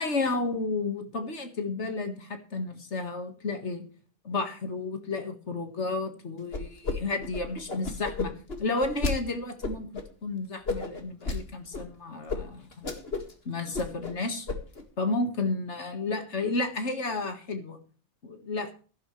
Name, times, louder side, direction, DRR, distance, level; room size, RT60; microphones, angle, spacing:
voice 1, 0.0-3.8 4.2-9.9 10.2-12.9 13.5-14.5 15.0-17.8 18.2-18.7, left 3 dB, 80° left, 6 dB, 2.0 m, -32 dB
sound 1, 6.5-7.0 7.2-9.1 9.6-10.0 10.7-11.4 11.7-11.8 12.3-12.4 12.7-13.3 13.6-14.1 14.5-14.8, left 3 dB, 60° left, 2.3 m, -32 dB
16.5 x 12.0 x 3.2 m, 0.39 s
omnidirectional pair, 1.2 m